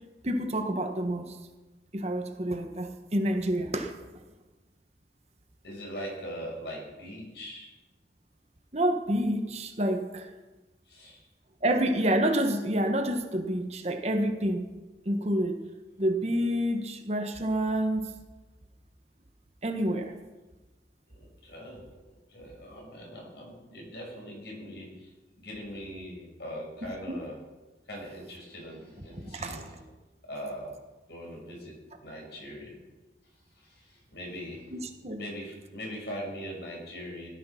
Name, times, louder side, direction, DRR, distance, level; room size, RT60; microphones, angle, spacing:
voice 1, 0.2-1.4 1.9-3.9 8.7-10.3 11.6-14.7 15.0-15.6 16.0-18.1 19.6-20.1 27.1-27.2 29.3-29.7 34.7-35.2, right 1 dB, 35° right, 4 dB, 1.4 m, -28 dB
voice 2, 5.6-7.7 10.9-11.2 21.1-21.9 22.3-27.4 27.9-29.7 30.2-30.8 31.1-32.8 33.5-37.3, equal, 65° left, -2 dB, 6.0 m, -41 dB
17.0 x 12.0 x 5.9 m, 1.2 s
head